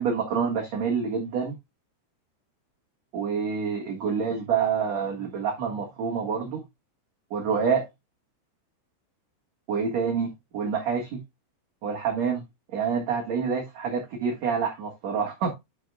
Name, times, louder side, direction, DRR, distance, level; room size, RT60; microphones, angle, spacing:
voice 1, 0.0-1.5 3.1-6.6 7.3-7.8 9.7-11.2 11.8-12.4 12.7-15.5, right 6 dB, 55° right, 2.0 m, -27 dB
11.5 x 6.3 x 2.3 m
omnidirectional pair, 5.3 m